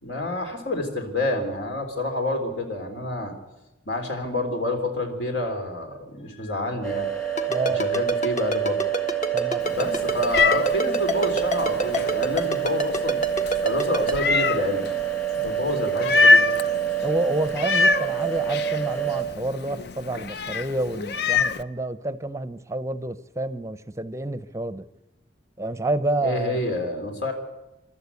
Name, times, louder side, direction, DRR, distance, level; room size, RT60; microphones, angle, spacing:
voice 1, 0.0-3.3 3.9-7.1 7.7-8.8 9.7-13.2 13.6-14.9 15.4-16.4 26.2-27.3, left 1 dB, 75° left, 4 dB, 3.6 m, -28 dB
sound 1, 6.8-19.2, right 10 dB, 15° left, 2.1 m, -27 dB
Ringtone, 7.4-14.1, equal, 40° left, 1.6 m, -26 dB
voice 2, 7.5-7.8 9.3-9.6 17.0-24.9 25.6-26.6, right 2 dB, 15° right, 13 dB, 0.6 m, -29 dB
Meow, 9.6-21.6, left 3 dB, 60° left, 0.6 m, -25 dB
28.0 x 12.5 x 8.3 m, 0.99 s
head